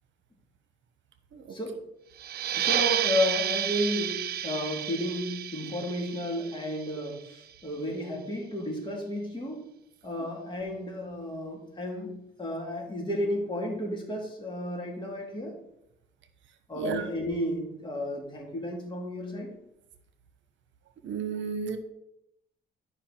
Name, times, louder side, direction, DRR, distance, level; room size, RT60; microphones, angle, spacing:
sound 1, 2.2-7.4, right 10 dB, 55° right, 0.4 m, -31 dB
voice 1, 2.6-9.6 10.0-12.1 12.4-15.5 16.7-19.5, left 1 dB, 25° left, -1 dB, 3.3 m, -32 dB
voice 2, 16.7-17.1 21.0-21.8, right 6 dB, 70° right, 9 dB, 1.0 m, -32 dB
12.0 x 5.5 x 4.5 m, 0.83 s
cardioid pair, 90°, 20 cm